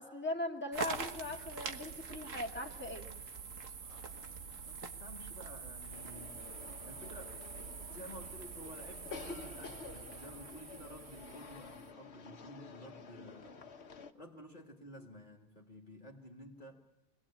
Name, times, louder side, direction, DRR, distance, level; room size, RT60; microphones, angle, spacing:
voice 1, 0.0-3.1, left 2 dB, 10° left, 1 dB, 2.0 m, -40 dB
sound 1, 0.7-11.9, right 5 dB, 85° right, 1.8 m, -45 dB
voice 2, 3.8-6.4 6.8-7.4 7.9-13.7 14.1-16.8, equal, 40° left, 0 dB, 2.0 m, -52 dB
sound 2, 5.9-14.1, left 5 dB, 60° left, 1.4 m, -50 dB
25.5 x 19.5 x 8.7 m, 1.1 s
omnidirectional pair, 1.3 m